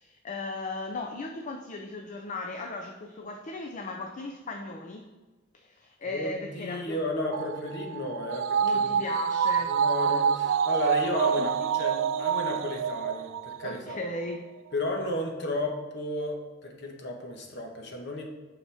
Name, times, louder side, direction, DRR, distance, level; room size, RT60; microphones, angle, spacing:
voice 1, 0.0-5.1 5.5-7.0 8.6-9.8 10.0-10.2 11.4-11.5 13.6-14.5, left 2 dB, 40° left, 4 dB, 0.5 m, -37 dB
voice 2, 6.1-9.0 9.6-14.0 14.7-18.2, left 1 dB, 60° left, 2 dB, 1.1 m, -33 dB
sound 1, 7.3-14.0 14.3-14.4, right 7 dB, 75° right, 0.3 m, -27 dB
7.1 x 5.7 x 3.4 m, 1.3 s
head